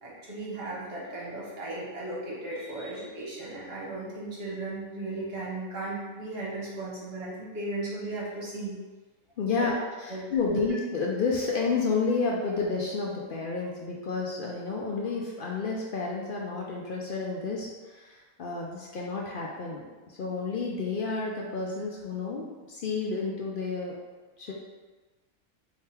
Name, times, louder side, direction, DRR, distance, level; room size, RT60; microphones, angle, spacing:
voice 1, 0.0-8.8 9.6-10.6, right 2 dB, 50° right, -6 dB, 1.2 m, -36 dB
voice 2, 9.4-23.9 24.4-24.5, left 4 dB, 65° left, -2 dB, 0.5 m, -31 dB
3.6 x 2.8 x 4.2 m, 1.3 s
omnidirectional pair, 1.4 m